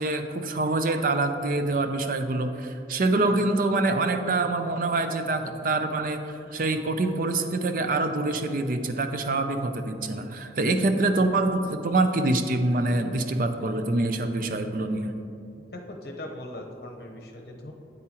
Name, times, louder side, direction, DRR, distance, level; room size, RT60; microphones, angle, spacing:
voice 1, 0.0-6.2 6.5-15.1, right 2 dB, 50° right, 7 dB, 0.5 m, -25 dB
voice 2, 15.7-17.7, left 1 dB, 65° left, 2 dB, 0.9 m, -39 dB
8.6 x 8.3 x 2.9 m, 2.5 s
head